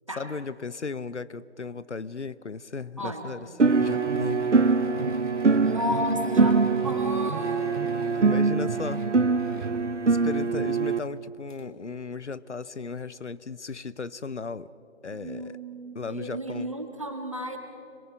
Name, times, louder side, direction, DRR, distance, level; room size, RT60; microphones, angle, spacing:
voice 1, 0.2-3.5 3.8-4.5 8.1-9.1 10.1-14.7 15.0-15.6 15.9-16.7, left 4 dB, 75° left, 17 dB, 0.8 m, -35 dB
voice 2, 3.0-3.5 5.6-8.3 15.1-17.6, equal, 25° right, 4 dB, 1.8 m, -33 dB
sound 1, 3.6-11.0, right 4 dB, 80° right, 1.0 m, -23 dB
sound 2, 3.8-8.4 8.7-9.9 11.2-11.3 11.5-11.6, left 1 dB, 45° left, 1.9 m, -51 dB
26.5 x 21.5 x 6.1 m, 2.7 s
figure-of-eight pair, 175°, 35 cm